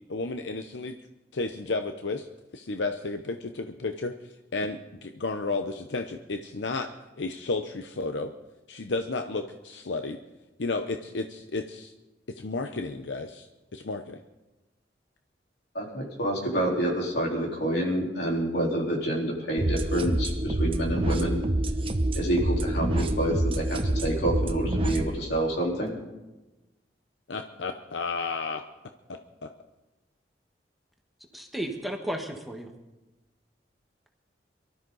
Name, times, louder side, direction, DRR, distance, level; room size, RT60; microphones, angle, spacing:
voice 1, 0.1-1.0 1.3-2.3 2.5-4.1 4.5-6.9 7.2-8.3 8.7-10.2 10.6-11.9 12.3-13.5 13.7-14.2 27.3-28.6 29.4-29.5, left 3 dB, 80° left, 6 dB, 0.8 m, -32 dB
voice 2, 15.7-21.4 22.2-26.0, right 1 dB, 65° left, -2 dB, 4.0 m, -28 dB
sound 1, 19.6-25.0, right 1 dB, 30° right, 0.9 m, -27 dB
voice 3, 31.3-32.7, right 1 dB, ahead, 2 dB, 1.4 m, -33 dB
23.5 x 13.0 x 4.0 m, 1.1 s
head